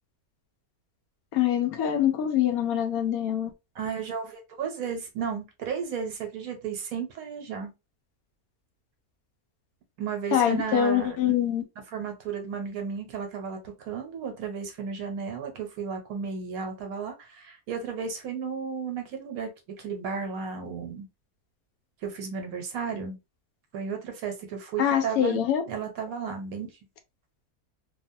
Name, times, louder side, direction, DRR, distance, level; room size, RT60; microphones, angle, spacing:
voice 1, 1.3-3.5 10.3-11.6 24.8-25.6, left 9 dB, 75° left, 1.0 m, -24 dB
voice 2, 3.8-7.7 10.0-11.3 11.9-19.5 19.8-21.1 22.0-23.2 23.7-25.4 25.7-26.7, right 6 dB, 70° right, 1.2 m, -34 dB
3.0 x 2.0 x 2.6 m
omnidirectional pair, 1.6 m